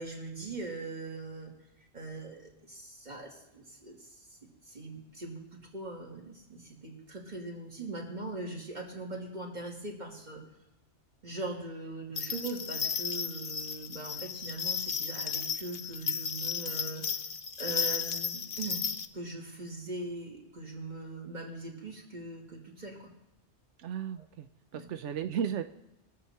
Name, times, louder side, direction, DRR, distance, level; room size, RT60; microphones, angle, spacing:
voice 1, 0.0-1.5 1.9-4.4 4.7-10.4 11.2-17.2 17.6-18.8 19.1-23.1 24.2-24.3 24.7-24.9, right 2 dB, 40° right, -1 dB, 2.6 m, -41 dB
sound 1, 12.2-19.1, left 6 dB, 60° left, 0.9 m, -34 dB
voice 2, 23.8-24.5 24.7-25.6, right 8 dB, 90° right, 9 dB, 1.0 m, -34 dB
22.5 x 7.7 x 4.3 m, 0.92 s
omnidirectional pair, 1.2 m